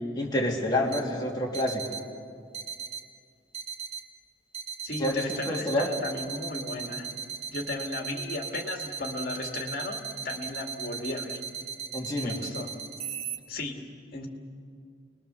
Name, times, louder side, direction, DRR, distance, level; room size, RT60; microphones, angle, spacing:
voice 1, 0.1-1.8 5.0-5.9 11.9-12.4, left 1 dB, 20° left, -3 dB, 2.7 m, -28 dB
sound 1, 0.9-1.0 1.5-2.0 2.5-3.0 3.5-4.0 4.5-13.4, right 7 dB, 35° right, 1.4 m, -37 dB
voice 2, 4.8-7.1 7.5-11.4 12.2-12.8 13.5-13.9 14.1-14.3, left 2 dB, 50° left, 2 dB, 2.4 m, -35 dB
29.5 x 20.5 x 7.0 m, 2.2 s
head